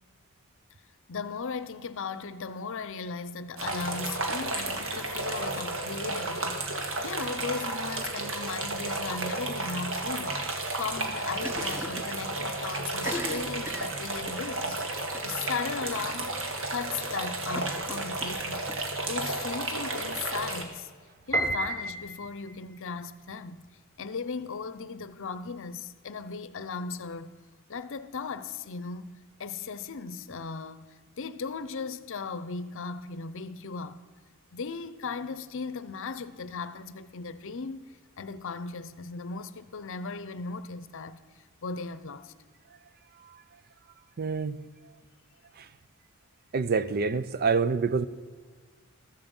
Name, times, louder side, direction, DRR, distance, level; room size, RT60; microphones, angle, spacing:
voice 1, 1.1-10.4 10.7-16.4 16.7-18.6 19.1-20.9 21.3-23.6 24.0-27.3 27.7-30.9 31.2-34.0 34.5-41.2 41.6-42.3, left 5 dB, 60° left, 0.7 m, -37 dB
sound 1, 3.6-20.6, right 2 dB, 65° right, 1.9 m, -33 dB
Cough, 11.4-12.2 12.4-12.5 12.9-14.5 15.1-15.4 15.8-15.9 16.2-16.3 17.5-18.8, left 1 dB, 10° right, 0.9 m, -39 dB
Piano, 21.3-22.6, right 2 dB, 15° left, 1.4 m, -30 dB
voice 2, 44.2-44.6 45.6-45.7 46.5-48.1, right 5 dB, 45° right, 0.5 m, -26 dB
14.5 x 13.5 x 5.4 m
head